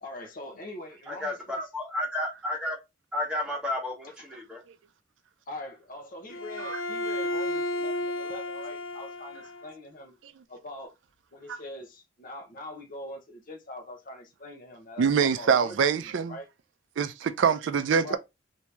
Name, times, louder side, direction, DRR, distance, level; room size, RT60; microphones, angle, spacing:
voice 1, 0.0-1.6 5.5-10.1 10.5-10.9 11.3-16.5 18.0-18.2, left 1 dB, 45° left, 0.8 m, -43 dB
voice 2, 1.1-2.8 3.1-4.6, left 1 dB, 5° right, 1.2 m, -32 dB
Bowed string instrument, 6.3-9.7, left 1 dB, 85° left, 0.4 m, -32 dB
voice 3, 15.0-16.3 17.0-18.2, right 6 dB, 70° right, 0.4 m, -24 dB
3.0 x 2.6 x 3.3 m
head